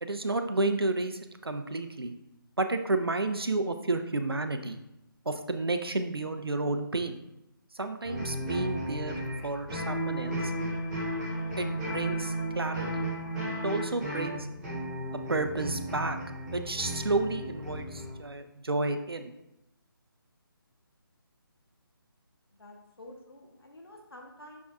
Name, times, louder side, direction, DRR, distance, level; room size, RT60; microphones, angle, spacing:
voice 1, 0.0-2.1 2.6-4.8 5.3-7.2 7.7-10.5 11.6-13.0 13.3-14.5 15.1-16.2 16.5-19.3, right 2 dB, 90° right, 8 dB, 0.5 m, -31 dB
sound 1, 8.0-18.2, right 1 dB, 5° right, 0.3 m, -34 dB
voice 2, 22.6-24.6, left 1 dB, 85° left, 1 dB, 0.9 m, -49 dB
6.0 x 3.6 x 2.3 m, 0.88 s
figure-of-eight pair, 150°, 12 cm